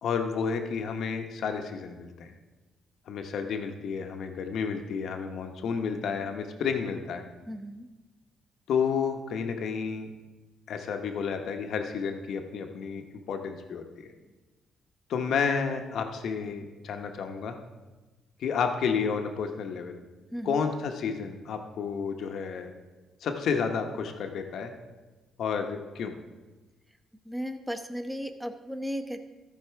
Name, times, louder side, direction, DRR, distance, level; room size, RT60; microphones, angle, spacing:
voice 1, 0.0-2.3 3.1-7.2 8.7-10.1 10.7-13.0 13.3-14.1 15.1-17.6 18.4-20.0 20.4-22.7 23.2-24.7 25.4-26.1, left 6 dB, 70° left, 5 dB, 0.9 m, -31 dB
voice 2, 7.5-7.9 20.3-20.7 27.2-29.2, equal, 5° right, 6 dB, 0.9 m, -35 dB
14.0 x 4.8 x 4.7 m, 1.2 s
cardioid pair, 90°, 0 cm